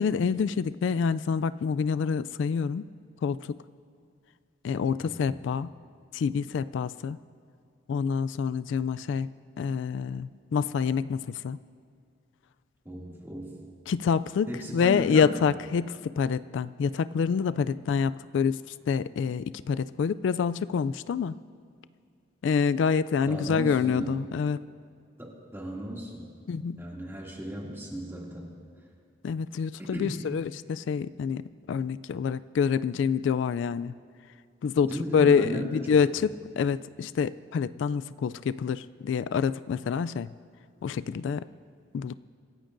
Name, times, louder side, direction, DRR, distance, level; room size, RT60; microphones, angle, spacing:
voice 1, 0.0-2.9 3.2-3.6 4.6-5.7 6.1-7.2 7.9-9.3 9.6-11.6 13.9-21.4 22.4-24.6 26.5-26.8 29.2-33.9 34.6-40.3 40.8-41.5 41.9-42.2, left 6 dB, 75° left, 15 dB, 0.3 m, -27 dB
voice 2, 5.0-5.4 12.8-13.6 14.5-15.4 23.3-24.2 25.2-26.3 26.8-28.5 29.8-30.2 34.8-36.0, equal, 15° right, -3 dB, 2.4 m, -36 dB
25.5 x 15.5 x 2.6 m, 2.3 s
head